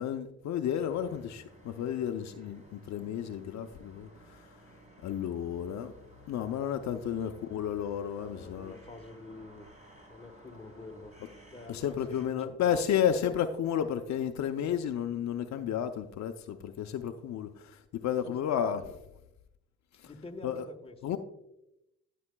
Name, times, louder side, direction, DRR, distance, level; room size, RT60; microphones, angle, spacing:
voice 1, 0.0-4.4 5.0-5.9 6.3-8.7 11.7-18.8 20.0-20.1 20.4-20.7 21.0-21.2, left 9 dB, 65° left, 7 dB, 0.6 m, -32 dB
sound 1, 0.8-12.3, right 1 dB, 25° right, 3.8 m, -55 dB
voice 2, 8.1-9.7 10.1-11.1 11.5-12.8 18.2-19.0 20.0-21.0, left 2 dB, 20° left, 3 dB, 1.2 m, -48 dB
14.5 x 8.3 x 2.2 m, 0.85 s
cardioid pair, 90°, 30 cm